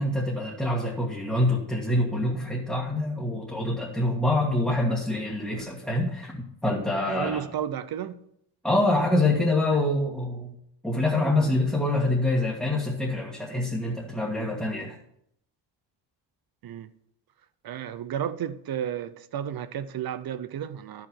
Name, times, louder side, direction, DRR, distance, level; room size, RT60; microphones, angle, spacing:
voice 1, 0.0-6.3 6.6-7.4 8.6-10.5 10.8-15.0, left 1 dB, ahead, 1.5 m, -25 dB
voice 2, 7.1-8.2 16.6-16.9 17.6-21.1, right 9 dB, 55° right, 0.7 m, -32 dB
12.5 x 6.0 x 5.5 m
wide cardioid pair, 155°, 45 cm